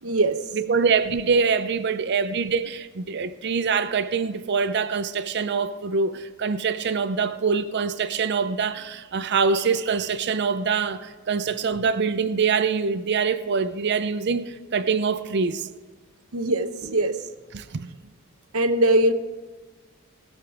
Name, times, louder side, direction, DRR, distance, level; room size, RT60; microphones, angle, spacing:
voice 1, 0.0-0.4 0.7-0.8 16.3-17.2 18.5-19.1, right 1 dB, 80° right, 0.9 m, -21 dB
voice 2, 0.5-15.7 17.5-17.9, right 5 dB, 55° right, 0.5 m, -24 dB
19.0 x 6.8 x 4.7 m
head